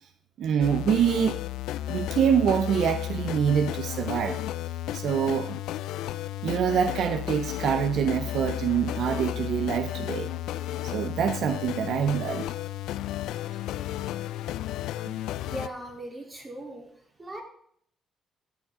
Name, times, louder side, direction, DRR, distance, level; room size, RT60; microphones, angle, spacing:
voice 1, 0.4-1.4 1.9-4.4 4.9-5.6 6.4-10.3 10.8-12.5 15.0-15.1, right 8 dB, 70° right, 10 dB, 0.7 m, -25 dB
sound 1, 0.6-15.7, left 13 dB, 90° left, 0.4 m, -33 dB
voice 2, 15.5-16.9 17.2-17.4, right 1 dB, 25° right, 1 dB, 3.4 m, -38 dB
14.0 x 8.1 x 3.7 m, 0.64 s
cardioid pair, 90°, 0 cm